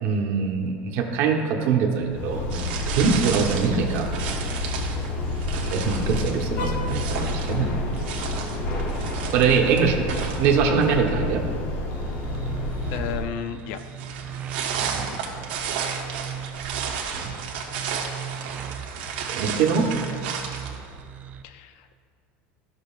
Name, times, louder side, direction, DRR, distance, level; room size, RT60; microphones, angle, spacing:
voice 1, 0.0-4.1 5.6-7.7 9.3-10.0 10.4-11.4 14.9-15.3 17.1-17.3 19.3-20.0, right 5 dB, 50° right, 1 dB, 1.0 m, -23 dB
sound 1, 2.1-13.3, left 2 dB, 40° left, 0.8 m, -29 dB
sound 2, 2.5-11.1 13.7-21.0, right 6 dB, 90° right, 1.2 m, -33 dB
sound 3, 11.9-21.4, right 8 dB, 25° right, 0.4 m, -38 dB
voice 2, 12.9-13.8 21.4-21.9, left 8 dB, 55° left, 9 dB, 0.4 m, -33 dB
14.0 x 6.2 x 2.4 m, 2.2 s
cardioid pair, 170°, 5 cm